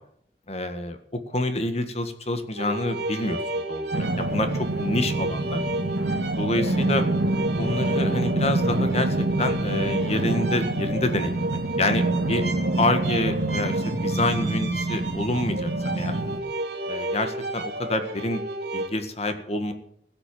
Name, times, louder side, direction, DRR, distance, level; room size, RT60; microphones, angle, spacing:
voice 1, 0.5-1.0 1.3-5.6 6.4-7.1 7.6-9.1 9.4-12.4 12.8-15.7 16.0-16.2 16.9-18.4 18.7-19.7, left 2 dB, 35° left, 8 dB, 1.7 m, -27 dB
sound 1, 2.6-18.9, right 2 dB, 70° right, 2.4 m, -32 dB
sound 2, 3.9-16.4, right 2 dB, 90° right, 1.6 m, -26 dB
15.5 x 7.8 x 8.6 m, 0.67 s
head